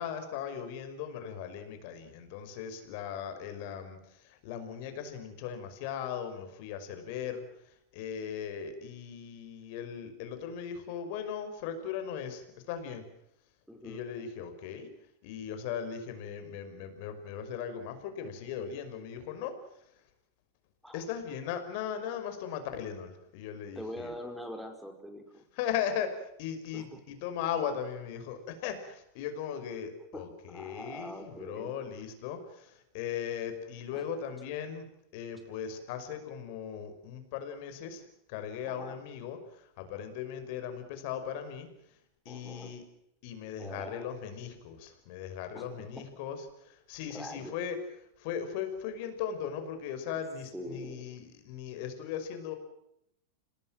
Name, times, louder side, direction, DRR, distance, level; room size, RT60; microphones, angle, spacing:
voice 1, 0.0-13.0 13.8-14.9 15.2-19.6 20.9-24.1 25.5-34.9 35.1-41.7 42.3-42.8 43.2-47.8 48.2-52.5, left 8 dB, 60° left, 8 dB, 5.7 m, -38 dB
voice 2, 13.7-14.1 20.8-21.0 23.8-25.4 26.7-27.0 30.1-31.7 33.9-34.0 38.6-39.0 42.3-42.7 43.6-44.1 45.5-46.1 47.1-47.6 50.5-51.1, equal, ahead, 5 dB, 5.5 m, -44 dB
27.0 x 19.0 x 7.7 m, 0.77 s
hypercardioid pair, 110°, 0 cm